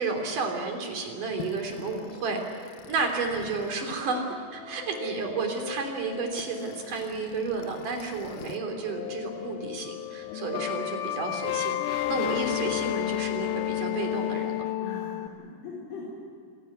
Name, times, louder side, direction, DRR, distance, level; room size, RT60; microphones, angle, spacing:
voice 1, 0.0-14.7, right 4 dB, 55° right, 3 dB, 4.5 m, -32 dB
sound 1, 1.4-8.6 8.9-15.3, left 15 dB, 80° left, 2.4 m, -34 dB
voice 2, 14.8-16.1, left 3 dB, 60° left, -5 dB, 6.3 m, -40 dB
26.0 x 17.0 x 9.5 m, 2.5 s
omnidirectional pair, 4.6 m